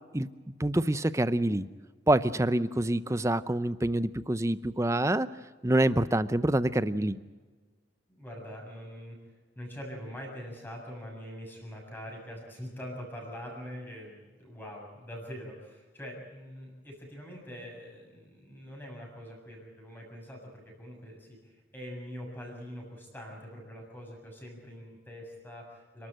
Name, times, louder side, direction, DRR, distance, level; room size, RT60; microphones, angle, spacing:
voice 1, 0.6-1.6 2.1-5.3 5.6-7.2, right 1 dB, 15° right, 14 dB, 0.6 m, -26 dB
voice 2, 8.2-9.2 9.6-26.1, equal, 10° left, 0 dB, 7.0 m, -44 dB
29.5 x 13.0 x 9.0 m, 1.4 s
head